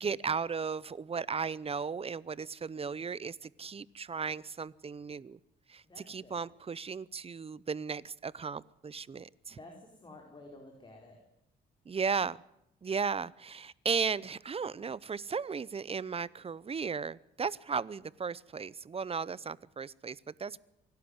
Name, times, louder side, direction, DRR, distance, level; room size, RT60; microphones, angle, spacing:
voice 1, 0.0-5.4 5.7-9.6 11.9-12.4 12.8-20.6, right 5 dB, 30° right, 21 dB, 0.7 m, -35 dB
voice 2, 5.8-6.4 9.5-11.2, left 2 dB, 25° left, 1 dB, 4.7 m, -52 dB
25.0 x 11.5 x 9.8 m, 0.82 s
cardioid pair, 90°, 20 cm